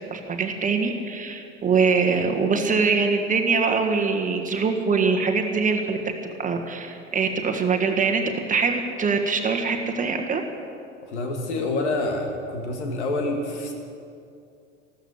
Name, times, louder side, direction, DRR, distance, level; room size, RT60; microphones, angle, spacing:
voice 1, 0.1-6.0 6.4-10.4, right 4 dB, 20° right, 3 dB, 1.5 m, -23 dB
voice 2, 11.1-13.7, left 2 dB, 70° left, 3 dB, 2.3 m, -27 dB
14.5 x 13.0 x 6.6 m, 2.5 s
figure-of-eight pair, 80°, 36 cm